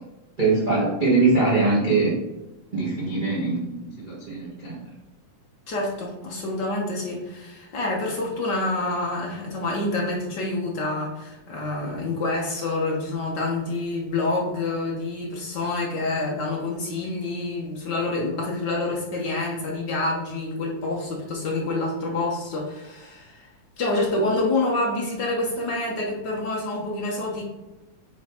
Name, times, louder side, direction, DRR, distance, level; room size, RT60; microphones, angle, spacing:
voice 1, 0.4-2.1 2.7-4.8 11.8-11.9, right 3 dB, 60° right, -7 dB, 0.5 m, -22 dB
voice 2, 5.7-23.5 23.8-27.4, left 2 dB, 70° left, -3 dB, 1.0 m, -27 dB
9.1 x 3.6 x 3.0 m, 1.0 s
omnidirectional pair, 3.6 m